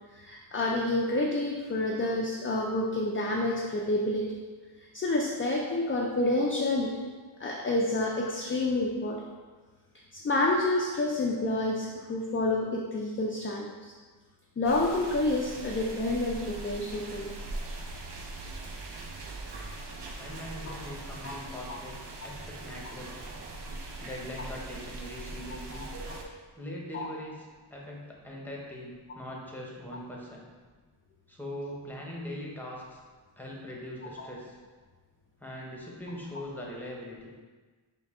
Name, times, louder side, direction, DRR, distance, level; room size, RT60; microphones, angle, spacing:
voice 1, 0.1-4.3 4.8-6.9 7.4-9.2 10.1-13.9 14.6-17.3 20.6-20.7 21.2-21.3 25.7-25.9 26.9-27.1 34.2-34.3, left 2 dB, 30° left, -1 dB, 0.4 m, -29 dB
sound 1, 14.6-26.2, right 2 dB, 55° right, 0.6 m, -41 dB
voice 2, 20.2-22.0 22.2-23.2 24.0-25.9 26.6-30.5 31.3-33.0 33.4-34.6 35.4-37.3, left 1 dB, 5° left, -3 dB, 0.8 m, -41 dB
5.4 x 2.2 x 3.5 m, 1.4 s
wide cardioid pair, 75°, 49 cm